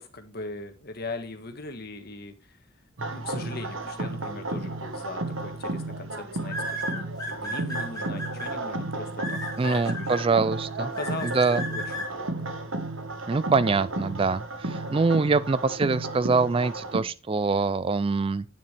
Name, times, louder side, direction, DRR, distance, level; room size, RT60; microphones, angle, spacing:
voice 1, 0.0-2.6 3.1-9.4 9.7-10.1 10.8-12.4, left 2 dB, 50° left, 1.5 m, -39 dB
sound 1, 3.0-17.0, right 2 dB, 80° right, 1.5 m, -33 dB
sound 2, 5.0-5.3 6.5-8.5 9.2-10.2 11.0-12.1, equal, 20° left, 2.9 m, -33 dB
voice 2, 9.6-10.9 11.2-11.6 13.3-18.4, right 4 dB, 25° right, 0.3 m, -24 dB
9.3 x 7.0 x 3.4 m
head